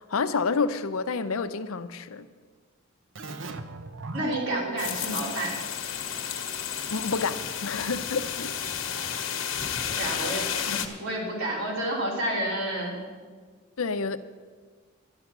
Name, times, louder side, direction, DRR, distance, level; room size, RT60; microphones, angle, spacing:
voice 1, 0.0-2.3 6.9-8.8 13.8-14.2, left 4 dB, 90° left, 0.7 m, -29 dB
Keyboard (musical), 3.1-6.5, right 3 dB, 65° right, 0.7 m, -39 dB
voice 2, 4.1-5.6 9.9-13.0, right 1 dB, 85° right, 3.8 m, -30 dB
sound 1, 4.8-10.9, left 8 dB, 70° left, 1.1 m, -32 dB
11.5 x 11.0 x 6.0 m
head